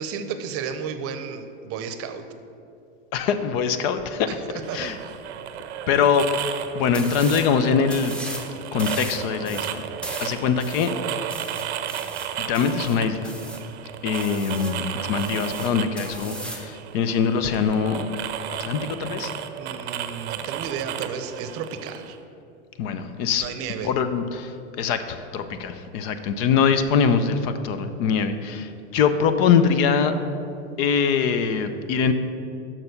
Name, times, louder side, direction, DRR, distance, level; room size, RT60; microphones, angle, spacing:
voice 1, 0.0-2.2 4.5-5.1 19.6-22.2 23.4-23.9, right 6 dB, 40° right, 9 dB, 0.7 m, -33 dB
voice 2, 3.1-4.3 4.7-5.0 5.9-6.3 6.7-8.2 8.7-9.8 10.2-11.3 12.4-13.3 14.0-18.1 18.5-19.3 22.8-23.5 23.8-30.2 30.8-32.1, left 6 dB, 55° left, 10 dB, 0.7 m, -23 dB
sound 1, 4.6-22.2, right 10 dB, 80° right, 0.7 m, -34 dB
sound 2, 6.9-7.5 7.9-8.5 8.8-13.7 14.1-14.8 15.2-16.7, right 1 dB, 5° left, 0.8 m, -37 dB
6.6 x 5.9 x 6.5 m, 2.6 s
supercardioid pair, 115°, 34 cm